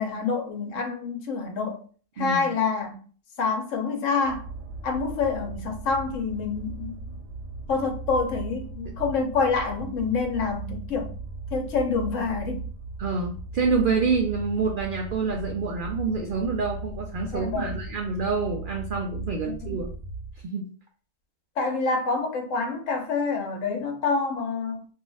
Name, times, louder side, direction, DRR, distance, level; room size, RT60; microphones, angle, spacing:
voice 1, 0.0-1.8 2.2-3.0 3.4-4.4 4.8-7.0 7.7-11.1 11.5-12.6 17.3-17.8 19.5-19.8 21.6-24.8, left 4 dB, 70° left, 1.1 m, -27 dB
voice 2, 2.2-2.5 13.0-19.9 20.4-20.7, right 4 dB, 85° right, 0.4 m, -27 dB
sound 1, 4.2-20.5, right 3 dB, 55° right, 1.1 m, -37 dB
2.7 x 2.4 x 3.9 m
omnidirectional pair, 1.4 m